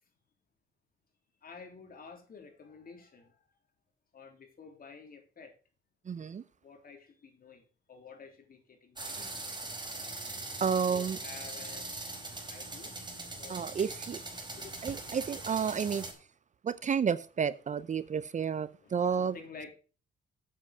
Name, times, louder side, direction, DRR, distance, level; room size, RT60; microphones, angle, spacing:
voice 1, 1.4-3.3 4.1-5.5 6.6-9.5 10.8-12.0 12.5-12.9 13.4-13.8 14.5-14.8 18.8-19.7, left 5 dB, 45° left, 3.3 m, -51 dB
voice 2, 6.1-6.4 10.6-11.2 13.5-14.2 14.8-16.1 16.6-19.4, right 6 dB, 40° right, 0.6 m, -31 dB
sound 1, 9.0-16.1, right 2 dB, 20° right, 4.8 m, -41 dB
8.5 x 7.4 x 6.7 m
cardioid pair, 90°, 20 cm